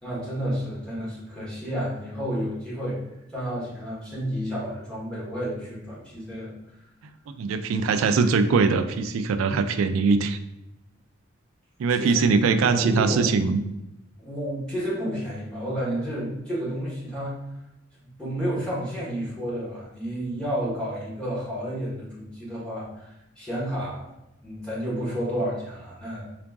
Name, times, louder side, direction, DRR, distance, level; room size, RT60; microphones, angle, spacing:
voice 1, 0.0-3.0 3.3-6.5 11.9-12.2 12.7-13.3 14.2-17.4 18.2-24.1 24.4-26.3, equal, 5° left, -7 dB, 1.1 m, -31 dB
voice 2, 7.4-10.4 11.8-13.6, right 4 dB, 80° right, 10 dB, 0.3 m, -22 dB
3.7 x 2.5 x 3.5 m, 0.89 s
head